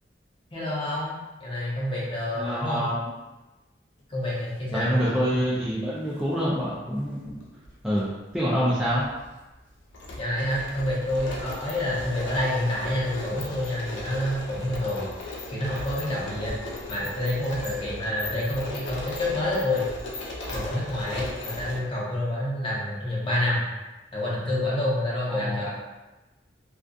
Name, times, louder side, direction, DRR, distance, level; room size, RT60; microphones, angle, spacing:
voice 1, 0.5-2.9 4.1-5.0 10.2-15.1 15.5-16.5 16.9-19.8 20.5-23.6 24.1-25.7, left 1 dB, 30° left, -6 dB, 0.7 m, -28 dB
voice 2, 2.4-3.1 4.7-7.2 7.8-9.0 25.3-25.7, equal, 5° right, -9 dB, 0.3 m, -26 dB
sound 1, 6.0-6.2 7.3-8.0 8.3-8.4 8.8-21.8, left 2 dB, 90° left, 0.5 m, -37 dB
2.3 x 2.3 x 2.5 m, 1.1 s
head